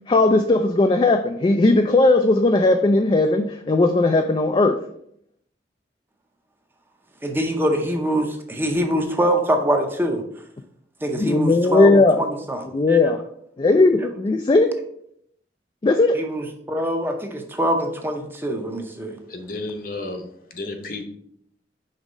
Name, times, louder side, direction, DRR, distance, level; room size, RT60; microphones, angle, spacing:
voice 1, 0.1-4.8 11.1-12.2 12.7-13.2 13.6-14.7 15.8-16.2, left 2 dB, 25° left, 6 dB, 0.3 m, -17 dB
voice 2, 7.2-10.2 11.0-13.0 16.1-19.2, equal, 10° right, 4 dB, 0.6 m, -24 dB
voice 3, 19.3-21.0, left 2 dB, 50° left, 4 dB, 0.8 m, -32 dB
5.3 x 3.6 x 5.1 m, 0.70 s
head